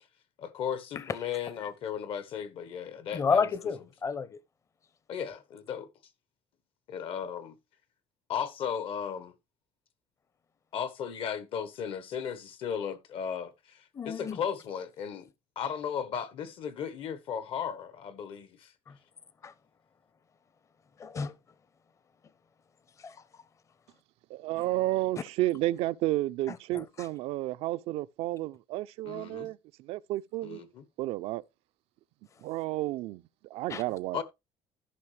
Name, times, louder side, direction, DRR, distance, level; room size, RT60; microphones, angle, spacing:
voice 1, 0.4-3.5 5.1-5.9 6.9-7.5 8.3-9.3 10.7-15.3 15.5-18.7 29.0-29.5 30.4-30.8 34.1-34.2, left 8 dB, 65° left, 1.2 m, -36 dB
voice 2, 3.1-4.4 13.9-14.4 18.9-19.0 19.4-19.5 21.0-21.3 23.0-23.2 26.5-27.1 33.7-33.8, left 5 dB, 30° left, 0.7 m, -31 dB
voice 3, 24.3-30.6 31.0-31.4 32.4-33.2 33.5-34.2, right 16 dB, 75° right, 0.5 m, -31 dB
14.0 x 5.6 x 3.3 m
cardioid pair, 125°, 10 cm